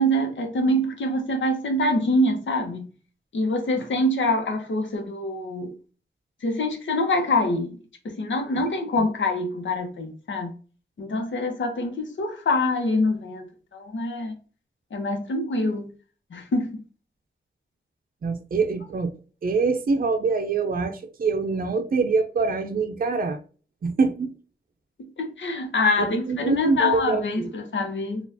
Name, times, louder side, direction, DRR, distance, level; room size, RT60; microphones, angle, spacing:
voice 1, 0.0-2.9 3.3-5.7 6.4-7.8 8.0-10.5 11.0-13.4 13.7-14.3 14.9-15.9 16.3-16.8 25.2-28.2, left 1 dB, 85° left, 0.9 m, -25 dB
voice 2, 18.2-19.1 19.4-23.4 23.8-24.4 26.0-27.5, right 4 dB, 50° right, 0.5 m, -25 dB
4.3 x 2.4 x 2.6 m
wide cardioid pair, 105°, 19 cm